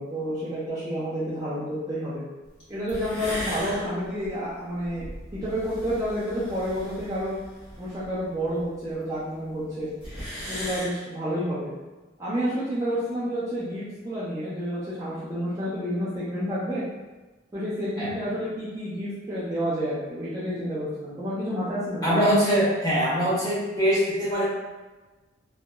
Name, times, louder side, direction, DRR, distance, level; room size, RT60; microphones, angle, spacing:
voice 1, 0.0-2.2 2.7-5.0 5.4-7.4 7.8-9.9 10.5-11.7 12.2-16.8 17.5-22.3, equal, 15° right, -10 dB, 0.4 m, -29 dB
slow deep breath and sharp intake of breath (breathing), 2.6-2.7 2.9-8.9 9.2-9.3 9.5-9.6 9.8-10.9, equal, 60° left, 1.2 m, -38 dB
voice 2, 22.0-24.4, equal, 20° left, -9 dB, 0.9 m, -22 dB
2.8 x 2.2 x 2.2 m, 1.2 s
head